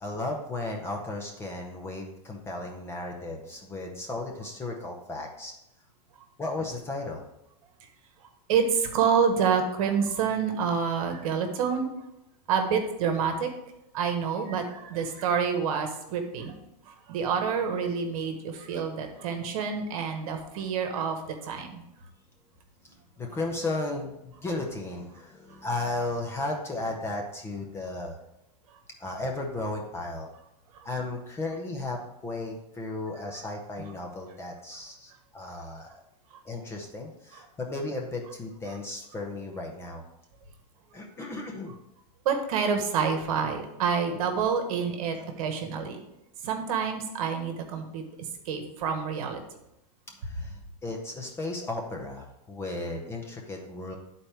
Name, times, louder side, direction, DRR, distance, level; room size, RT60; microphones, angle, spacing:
voice 1, 0.0-5.5 6.4-7.2 22.8-28.2 29.0-30.3 30.8-36.0 36.4-40.0 40.9-41.7 50.2-54.0, left 2 dB, 10° left, 1 dB, 0.7 m, -35 dB
voice 2, 8.5-11.9 12.5-13.5 13.9-16.5 16.9-21.8 37.3-37.4 42.2-46.0 46.4-48.0 48.4-49.4, right 6 dB, 55° right, 5 dB, 1.3 m, -28 dB
11.5 x 4.2 x 3.4 m, 0.86 s
supercardioid pair, 155°, 21 cm